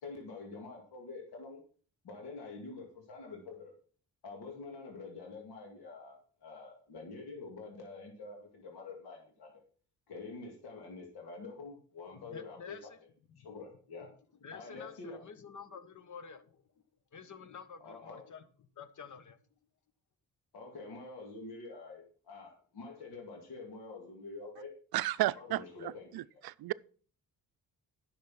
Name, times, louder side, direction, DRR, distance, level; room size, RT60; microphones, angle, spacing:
voice 1, 0.0-1.6 2.0-3.7 4.2-9.6 10.1-12.8 13.4-14.1 14.5-15.2 17.8-18.2 20.5-24.7 25.3-26.4, left 3 dB, 85° left, 2.5 m, -47 dB
voice 2, 12.3-13.0 13.3-13.5 14.4-16.6 17.1-18.4 18.8-19.4, left 6 dB, 55° left, 1.4 m, -49 dB
voice 3, 24.9-25.6 26.1-26.7, right 16 dB, 75° right, 0.5 m, -32 dB
10.5 x 6.4 x 5.9 m
cardioid pair, 90°, 36 cm